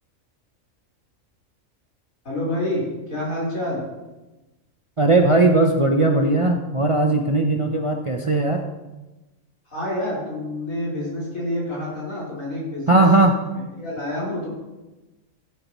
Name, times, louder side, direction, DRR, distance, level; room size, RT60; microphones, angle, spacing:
voice 1, 2.2-2.8 3.1-3.8 9.7-13.0 13.8-14.5, left 1 dB, 85° left, -6 dB, 4.8 m, -28 dB
voice 2, 5.0-8.6 12.9-13.3, right 2 dB, 35° right, 3 dB, 0.5 m, -18 dB
15.0 x 8.6 x 3.0 m, 1.1 s
omnidirectional pair, 1.4 m